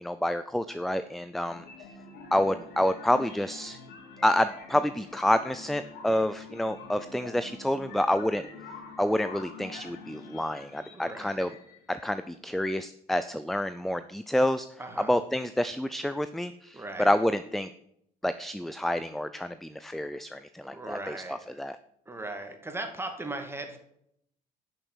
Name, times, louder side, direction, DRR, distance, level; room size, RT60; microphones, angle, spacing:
voice 1, 0.0-1.6 2.3-3.8 4.2-8.4 9.0-11.5 11.9-14.7 15.1-17.7 18.2-21.8, left 1 dB, ahead, 12 dB, 0.5 m, -28 dB
sound 1, 1.5-12.1, left 4 dB, 80° left, 3.1 m, -46 dB
voice 2, 10.9-11.5 14.8-15.1 16.7-17.1 20.7-21.6 22.1-23.8, right 2 dB, 15° right, 5 dB, 2.3 m, -38 dB
11.0 x 6.5 x 7.9 m, 0.73 s
cardioid pair, 110°, 17 cm